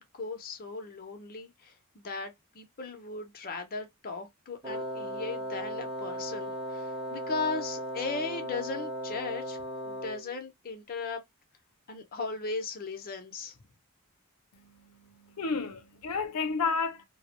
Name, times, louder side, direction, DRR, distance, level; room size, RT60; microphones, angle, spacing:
voice 1, 0.0-9.6 9.9-11.2 11.9-13.6, left 4 dB, 40° left, 0.6 m, -37 dB
Wind instrument woodwind instrument, 4.6-10.3, equal, 25° right, 0.6 m, -37 dB
voice 2, 14.5-17.0, left 4 dB, 90° left, 0.5 m, -32 dB
2.3 x 2.1 x 2.9 m
head